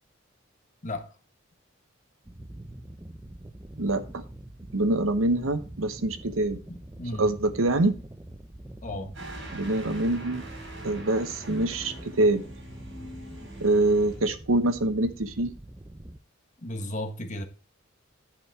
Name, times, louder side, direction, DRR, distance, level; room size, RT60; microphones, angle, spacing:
sound 1, 2.2-16.2, right 1 dB, 15° right, 0.6 m, -44 dB
voice 1, 3.8-4.2 4.7-6.6 7.2-7.9 9.5-10.4 10.8-12.4 13.6-15.5, right 2 dB, 85° right, 1.0 m, -25 dB
voice 2, 6.7-7.3 8.8-9.1 16.6-17.4, left 1 dB, 40° left, 1.4 m, -34 dB
sound 2, 9.1-14.2, right 1 dB, 60° right, 5.0 m, -43 dB
11.0 x 5.3 x 4.6 m
head